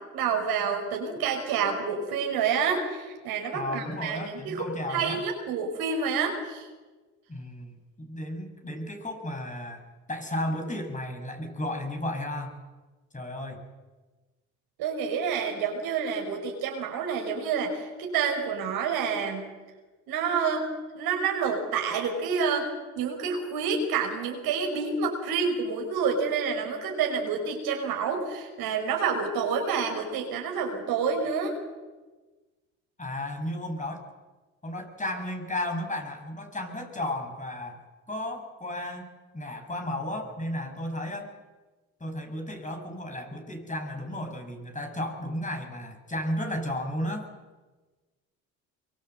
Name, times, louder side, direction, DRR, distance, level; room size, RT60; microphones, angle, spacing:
voice 1, 0.0-6.7 14.8-19.4 20.1-20.6 20.9-22.7 23.0-31.5, right 6 dB, 70° right, 2 dB, 5.4 m, -28 dB
voice 2, 3.5-5.2 7.3-9.8 10.1-12.6 13.1-13.6 33.0-34.1 34.6-39.1 39.3-41.3 42.0-47.3, left 1 dB, 20° left, 4 dB, 6.1 m, -34 dB
23.5 x 23.5 x 8.0 m, 1.3 s
supercardioid pair, 70°, 38 cm